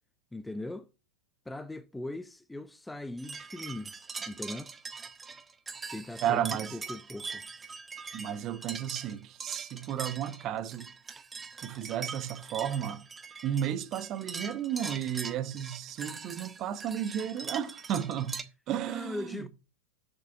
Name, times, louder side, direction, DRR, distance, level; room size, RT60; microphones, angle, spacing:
voice 1, 0.3-0.9 1.5-3.9 4.3-4.7 5.9-7.4 18.9-19.5, left 2 dB, 5° left, 0.5 m, -39 dB
sound 1, 3.2-18.4, right 5 dB, 15° right, 0.8 m, -42 dB
voice 2, 6.2-6.8 8.1-10.9 11.6-13.0 13.4-19.5, right 10 dB, 35° right, 1.1 m, -33 dB
6.8 x 6.7 x 7.3 m
figure-of-eight pair, 90°, 0 cm